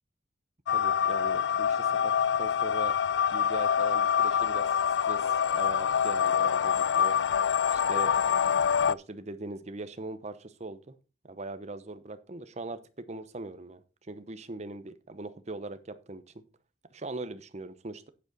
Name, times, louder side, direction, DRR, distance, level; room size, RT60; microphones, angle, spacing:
sound 1, 0.7-9.0, left 8 dB, 75° left, 0.3 m, -26 dB
voice 1, 0.7-2.1 2.4-3.0 3.3-4.7 5.0-7.2 7.7-8.1 8.8-10.9 11.2-13.8 14.1-16.4 16.9-18.1, right 2 dB, 40° right, 11 dB, 0.9 m, -40 dB
9.1 x 7.9 x 4.0 m, 0.33 s
head